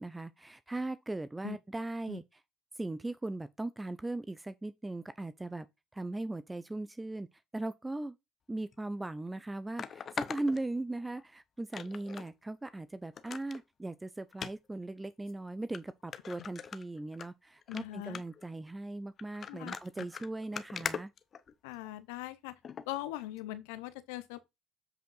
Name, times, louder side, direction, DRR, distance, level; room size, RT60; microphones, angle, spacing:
voice 1, 0.0-2.2 2.8-5.7 5.9-7.3 7.5-8.2 8.5-21.1, right 2 dB, 15° right, 0.6 m, -38 dB
sound 1, 8.7-8.8 9.8-11.2 11.7-12.3 12.7-12.8 13.2-13.6 14.3-14.5 15.3-15.4 15.7-15.8 16.1-17.3 17.6-17.8 18.1-18.4 19.2-21.9 22.6-22.9 23.4-23.5, left 7 dB, 40° left, 0.7 m, -41 dB
voice 2, 17.7-18.2 19.5-20.0 21.6-22.6 22.9-24.5, left 16 dB, 70° left, 0.9 m, -41 dB
7.9 x 5.2 x 4.0 m
hypercardioid pair, 60°, 0 cm